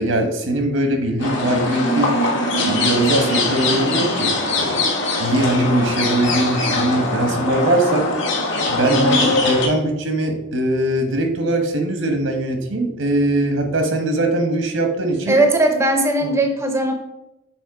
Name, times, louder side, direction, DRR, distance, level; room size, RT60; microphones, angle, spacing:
voice 1, 0.0-2.2 2.7-4.8 5.2-8.1 8.7-15.4 16.2-16.3, right 1 dB, 80° right, 5 dB, 1.1 m, -21 dB
sound 1, 1.2-9.7, left 2 dB, 65° left, 1.4 m, -21 dB
voice 2, 8.9-9.3 15.3-16.9, right 1 dB, 15° right, 5 dB, 0.6 m, -18 dB
6.3 x 3.5 x 4.6 m, 0.90 s
head